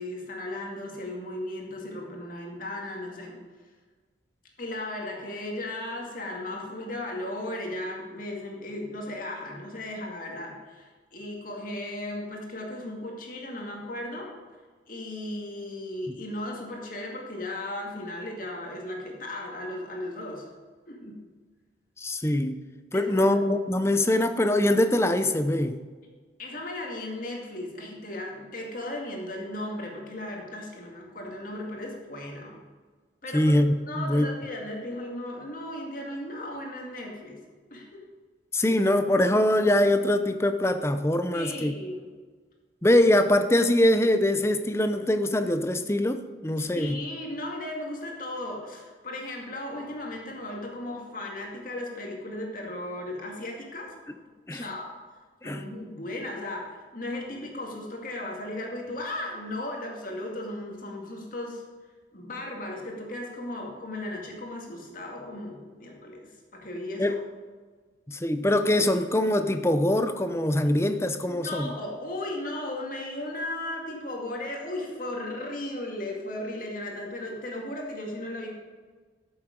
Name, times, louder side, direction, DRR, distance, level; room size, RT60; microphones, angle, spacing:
voice 1, 0.0-3.4 4.6-14.3 14.9-20.5 20.9-21.2 22.9-23.4 26.4-32.6 33.2-33.6 33.9-37.4 37.7-38.0 41.3-42.1 46.6-53.9 54.5-54.9 55.4-61.6 62.1-67.2 71.2-78.5, left 1 dB, 45° left, -1 dB, 2.2 m, -36 dB
voice 2, 22.0-22.6 22.9-25.8 33.3-34.3 38.5-41.7 42.8-47.0 54.5-54.7 55.4-55.6 67.0-67.1 68.1-71.7, left 1 dB, 15° left, 9 dB, 0.6 m, -23 dB
13.5 x 7.1 x 5.3 m, 1.4 s
head